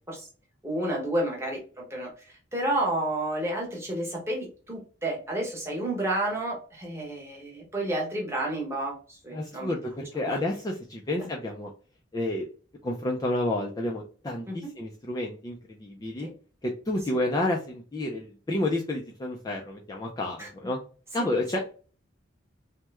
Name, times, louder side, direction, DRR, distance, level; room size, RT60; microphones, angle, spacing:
voice 1, 0.6-9.7 10.2-10.4 14.5-14.6 16.2-16.3 20.4-20.5 21.2-21.3, right 1 dB, 15° right, -2 dB, 1.0 m, -31 dB
voice 2, 9.3-11.7 12.1-12.5 12.8-16.3 16.6-20.8 21.1-21.6, left 1 dB, 20° left, 0 dB, 0.3 m, -30 dB
3.0 x 2.1 x 3.4 m, 0.39 s
head